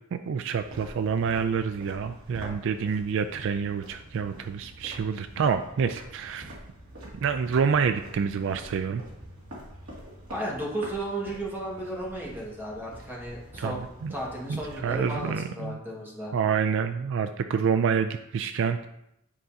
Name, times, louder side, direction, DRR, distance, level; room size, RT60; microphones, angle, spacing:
voice 1, 0.1-6.6 7.1-9.0 13.6-14.1 14.5-15.8 16.3-18.9, right 6 dB, 60° right, 10 dB, 0.3 m, -27 dB
sound 1, 0.6-15.4, equal, 75° right, 2.3 m, -46 dB
voice 2, 10.3-16.3, right 1 dB, 10° right, -4 dB, 1.6 m, -34 dB
10.0 x 5.1 x 2.8 m, 0.82 s
head